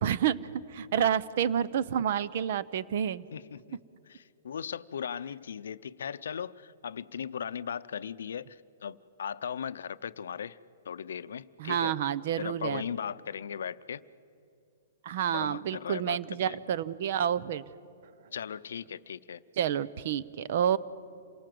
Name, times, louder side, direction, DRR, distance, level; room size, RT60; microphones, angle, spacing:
voice 1, 0.0-3.2 11.6-12.8 15.0-17.6 19.6-20.8, right 9 dB, 55° right, 18 dB, 0.7 m, -29 dB
voice 2, 3.3-3.8 4.1-10.6 10.9-11.9 12.4-14.0 15.3-16.6 18.3-19.4, left 7 dB, 80° left, 15 dB, 0.6 m, -38 dB
27.5 x 18.0 x 7.7 m, 2.6 s
hypercardioid pair, 150°, 0 cm